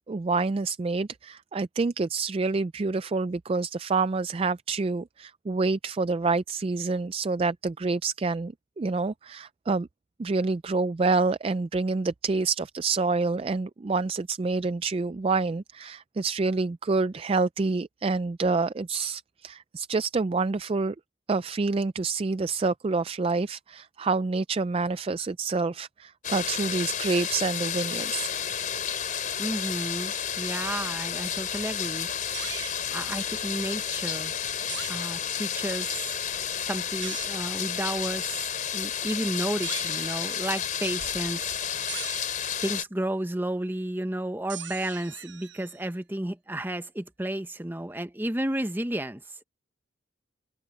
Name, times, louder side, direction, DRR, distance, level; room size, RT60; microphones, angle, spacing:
voice 1, 0.1-9.9 10.2-21.0 21.3-28.3, right 3 dB, 30° right, 0.3 m, -27 dB
sound 1, 26.2-42.8, left 8 dB, 45° left, 3.9 m, -31 dB
voice 2, 29.4-32.1 32.9-34.3 34.9-36.2 36.6-41.6 42.6-49.4, right 1 dB, 10° right, 0.8 m, -32 dB
sound 2, 32.3-32.8 34.7-34.9 37.0-37.4 39.6-40.6 41.9-42.4 44.5-45.9, right 11 dB, 70° right, 1.1 m, -40 dB
head